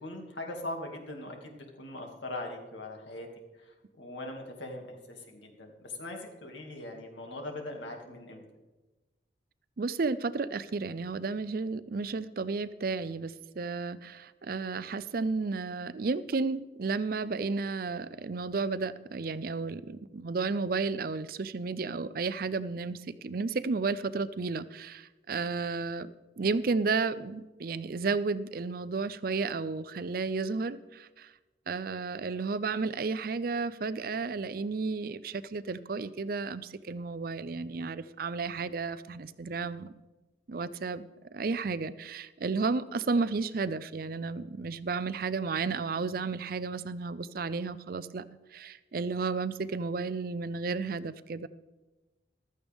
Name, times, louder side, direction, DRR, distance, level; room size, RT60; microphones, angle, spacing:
voice 1, 0.0-3.3 3.5-8.4, left 1 dB, 85° left, 2 dB, 2.4 m, -41 dB
voice 2, 9.8-31.3 31.7-39.9 40.5-41.0 41.3-48.2 48.5-51.5, right 4 dB, 50° right, 15 dB, 0.5 m, -32 dB
15.0 x 13.0 x 3.6 m, 1.1 s
head